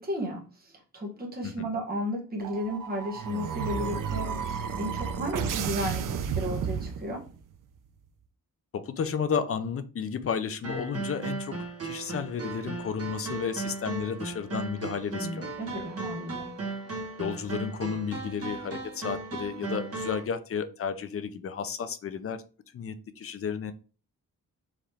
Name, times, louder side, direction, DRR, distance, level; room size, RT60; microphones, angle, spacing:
voice 1, 0.0-7.2 15.1-16.5, equal, 25° right, -2 dB, 1.3 m, -34 dB
sound 1, 2.4-7.4, right 7 dB, 65° right, 0.5 m, -32 dB
voice 2, 8.7-11.5 11.8-15.5 15.8-15.9 17.2-22.4 22.7-23.7, left 6 dB, 40° left, 11 dB, 0.5 m, -32 dB
sound 2, 10.6-20.2, right 3 dB, 40° right, 1.3 m, -36 dB
4.9 x 3.0 x 3.4 m, 0.36 s
wide cardioid pair, 170°, 34 cm